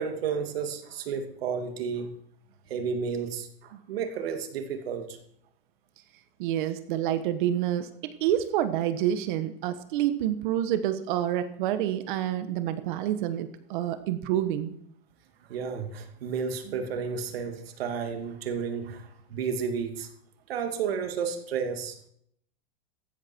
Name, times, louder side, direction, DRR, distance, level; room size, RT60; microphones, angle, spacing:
voice 1, 0.0-2.1 2.7-5.2 15.5-20.1 20.5-22.0, right 6 dB, 80° right, 6 dB, 2.6 m, -32 dB
voice 2, 6.4-14.7 16.7-16.8, right 11 dB, 55° right, 10 dB, 1.4 m, -28 dB
15.0 x 11.5 x 4.6 m, 0.69 s
supercardioid pair, 155°, 29 cm